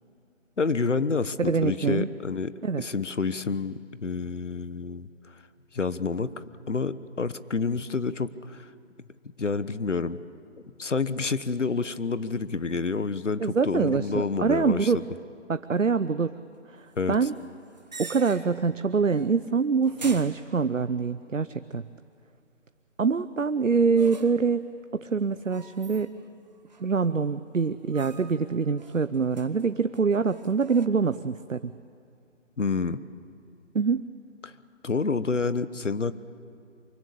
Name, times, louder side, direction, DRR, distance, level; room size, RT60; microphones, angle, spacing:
voice 1, 0.6-2.5 2.8-5.1 5.7-6.3 6.7-8.7 9.4-10.2 10.8-15.0 17.0-17.3 32.6-33.0 34.4-34.5 34.8-36.2, left 4 dB, 70° left, 14 dB, 1.2 m, -28 dB
voice 2, 1.4-2.1 2.6-2.8 13.4-15.0 15.5-16.3 16.7-17.3 18.0-21.9 23.0-24.7 24.9-26.1 26.8-31.7 33.7-34.1, right 5 dB, 90° right, 12 dB, 0.8 m, -25 dB
sound 1, 17.4-18.7 19.1-19.5 19.8-21.1 24.0-24.6 25.5-26.3 26.7-27.3 27.9-28.5 28.8-30.9, right 4 dB, 35° right, 1.2 m, -45 dB
24.0 x 21.5 x 8.6 m, 2.5 s
figure-of-eight pair, 160°, 38 cm